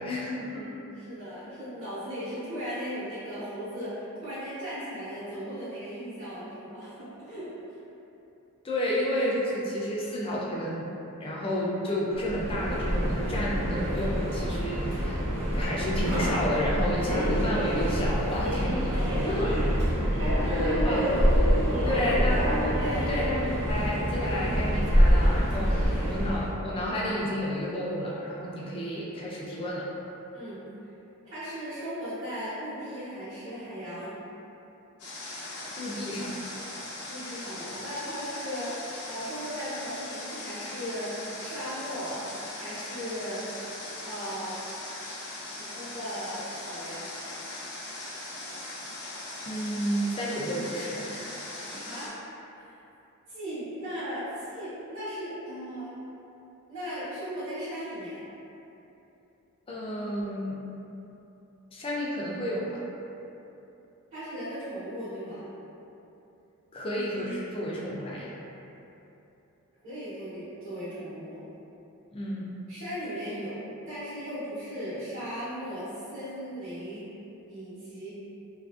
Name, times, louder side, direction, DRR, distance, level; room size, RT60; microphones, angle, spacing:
voice 1, 0.0-0.7 8.6-10.9 11.2-15.2 15.5-19.0 19.2-19.6 20.3-21.2 21.8-22.4 23.1-29.9 35.5-36.4 49.5-51.4 51.7-51.8 59.7-60.6 61.7-62.8 66.7-68.3 72.1-72.5, equal, 25° left, -5 dB, 0.3 m, -31 dB
voice 2, 0.5-7.8 19.2-19.5 20.4-20.9 21.8-22.1 22.8-23.1 30.3-30.6 31.3-34.2 37.1-38.7 39.0-42.2 42.5-43.4 44.0-44.6 45.6-47.1 51.6-52.1 52.5-52.6 53.3-55.9 56.7-58.2 64.1-65.5 69.8-71.4 72.7-77.1 77.5-78.1, equal, 55° right, -17 dB, 1.0 m, -37 dB
Subway metro underground, 12.1-26.5, equal, 90° right, 0.6 m, -26 dB
Water, 35.0-52.1, left 2 dB, 80° left, 0.6 m, -40 dB
2.7 x 2.5 x 2.3 m, 2.9 s
head